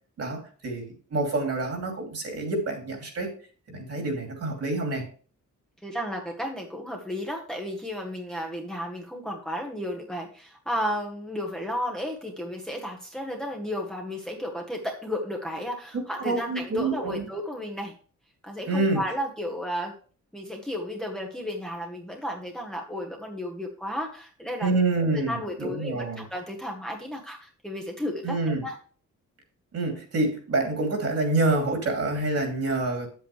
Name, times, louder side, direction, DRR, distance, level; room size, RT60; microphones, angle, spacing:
voice 1, 0.2-3.3 3.7-5.0 16.2-17.2 18.7-19.0 24.6-26.2 28.2-28.6 29.7-33.1, right 2 dB, 55° right, 2 dB, 2.8 m, -27 dB
voice 2, 5.8-17.9 18.4-19.9 20.3-24.7 25.1-28.8, equal, ahead, 0 dB, 1.2 m, -33 dB
8.9 x 8.0 x 3.2 m, 0.41 s
wide cardioid pair, 155°, 30 cm